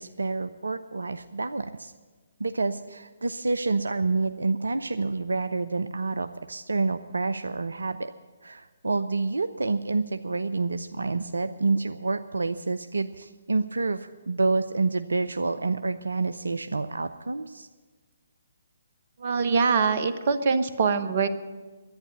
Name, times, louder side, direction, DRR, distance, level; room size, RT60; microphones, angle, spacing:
voice 1, 0.0-1.9 2.4-8.1 8.4-17.7, right 3 dB, 75° right, 10 dB, 0.5 m, -28 dB
voice 2, 19.2-21.3, right 5 dB, 50° right, 10 dB, 1.0 m, -23 dB
11.5 x 9.9 x 9.6 m, 1.3 s
figure-of-eight pair, 135°, 0 cm